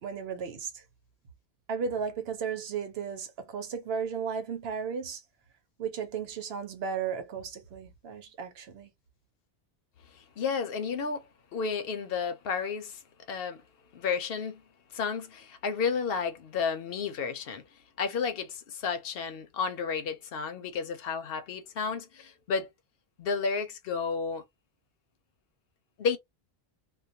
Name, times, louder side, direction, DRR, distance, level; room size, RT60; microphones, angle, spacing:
voice 1, 0.0-0.8 1.7-5.2 5.8-8.9, right 6 dB, 75° right, 1.0 m, -35 dB
voice 2, 10.1-11.3 11.5-13.0 13.3-13.6 13.9-14.6 14.9-17.6 18.0-22.7 23.2-24.4 26.0-26.2, left 5 dB, 70° left, 0.8 m, -32 dB
2.3 x 2.2 x 2.6 m
omnidirectional pair, 1.0 m